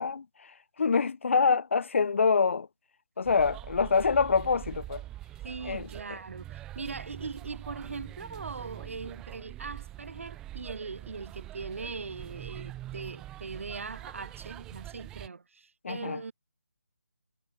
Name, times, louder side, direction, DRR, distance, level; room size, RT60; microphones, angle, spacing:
voice 1, 0.0-2.7 3.2-5.0 5.6-6.2 15.8-16.2, left 5 dB, 50° left, 0.4 m, -26 dB
sound 1, 3.2-15.3, right 14 dB, 5° right, 0.6 m, -44 dB
voice 2, 5.4-16.3, right 4 dB, 55° right, 1.5 m, -40 dB
figure-of-eight pair, 160°, 9 cm